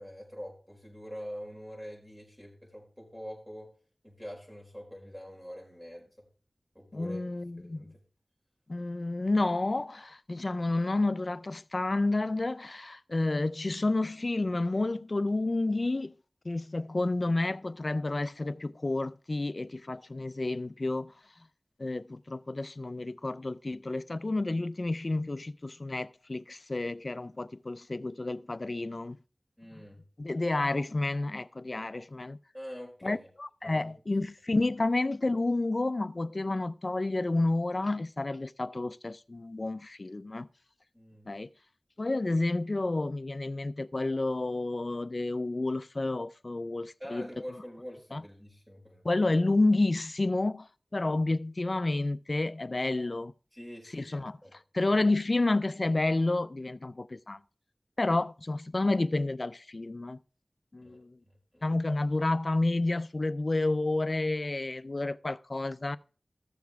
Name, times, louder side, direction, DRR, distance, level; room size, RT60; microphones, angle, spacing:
voice 1, 0.0-3.7 4.0-6.3 6.8-7.2 7.6-8.0 29.6-30.0 32.5-33.3 33.6-33.9 40.9-41.3 47.0-49.0 53.5-54.2 54.4-54.5 60.8-61.0 61.5-61.7, equal, 10° right, 5.1 m, -45 dB
voice 2, 6.9-7.9 8.7-16.1 16.4-21.1 21.8-29.2 29.7-29.8 30.2-32.4 33.0-40.5 41.3-41.5 42.0-47.3 48.1-48.2 49.0-53.3 53.9-57.4 58.0-60.2 60.7-61.2 61.6-66.0, left 2 dB, 60° left, 0.4 m, -30 dB
14.0 x 7.0 x 3.5 m
wide cardioid pair, 45°, 0 cm